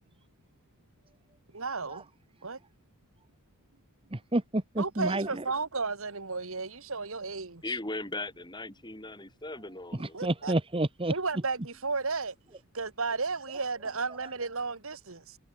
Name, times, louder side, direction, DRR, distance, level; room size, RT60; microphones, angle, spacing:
voice 1, 1.5-2.0 2.4-2.6 4.8-7.6 10.1-10.5 11.1-12.4 12.7-15.4, right 4 dB, 65° right, 1.8 m, -33 dB
voice 2, 4.1-5.3 10.0-11.1, right 1 dB, 25° right, 1.1 m, -29 dB
voice 3, 7.6-10.2, left 2 dB, 20° left, 7.1 m, -38 dB
head